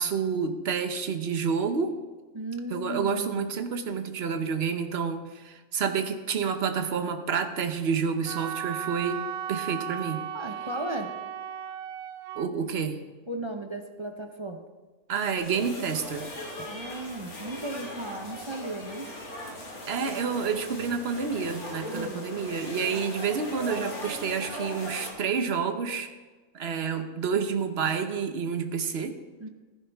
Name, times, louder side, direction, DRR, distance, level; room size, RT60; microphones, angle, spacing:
voice 1, 0.0-1.9 2.7-10.2 12.4-13.0 15.1-16.3 19.9-26.1 26.5-29.2, right 6 dB, 50° right, 8 dB, 1.0 m, -29 dB
voice 2, 2.3-3.5 10.3-11.1 13.3-14.6 16.7-19.1 21.9-22.3 29.4-29.5, right 2 dB, 30° right, 4 dB, 0.5 m, -36 dB
Wind instrument woodwind instrument, 8.3-12.5, right 10 dB, 80° right, 1.1 m, -36 dB
sound 1, 15.4-25.1, left 1 dB, 80° left, 2.8 m, -39 dB
15.5 x 10.5 x 3.5 m, 1.3 s
omnidirectional pair, 1.5 m